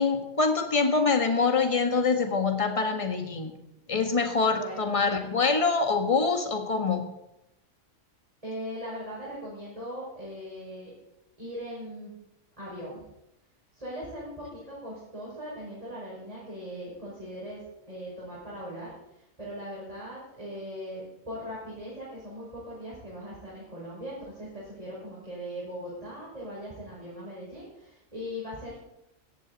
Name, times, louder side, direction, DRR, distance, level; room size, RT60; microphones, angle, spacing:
voice 1, 0.0-3.5 3.9-7.0, left 4 dB, 25° left, 5 dB, 1.7 m, -25 dB
voice 2, 8.4-10.9 11.4-12.1 12.6-13.1 13.7-28.8, equal, 25° right, -7 dB, 5.7 m, -39 dB
17.5 x 15.0 x 4.2 m, 0.86 s
omnidirectional pair, 1.4 m